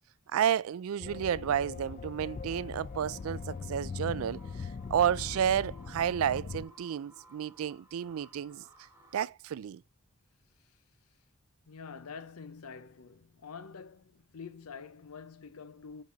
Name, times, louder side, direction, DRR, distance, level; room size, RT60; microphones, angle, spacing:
voice 1, 0.3-8.6 9.1-9.8, right 9 dB, 70° right, 0.3 m, -31 dB
sound 1, 1.0-6.7, left 5 dB, 35° left, 0.3 m, -41 dB
sound 2, 2.3-9.2, right 1 dB, 10° right, 1.2 m, -58 dB
voice 2, 11.7-16.0, left 5 dB, 80° left, 0.7 m, -47 dB
5.3 x 5.1 x 4.5 m
head